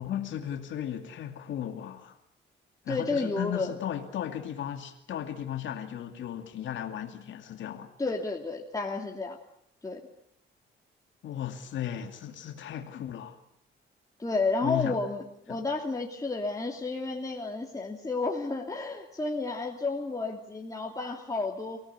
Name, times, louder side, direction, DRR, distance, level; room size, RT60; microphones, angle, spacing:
voice 1, 0.0-2.2 2.8-7.9 11.2-13.4 14.6-15.0 15.5-15.6, left 10 dB, 70° left, 2.5 m, -35 dB
voice 2, 2.9-3.7 8.0-9.4 9.8-10.0 14.2-21.8, left 3 dB, 15° left, 2.9 m, -31 dB
24.5 x 17.5 x 9.6 m
cardioid pair, 90°, 20 cm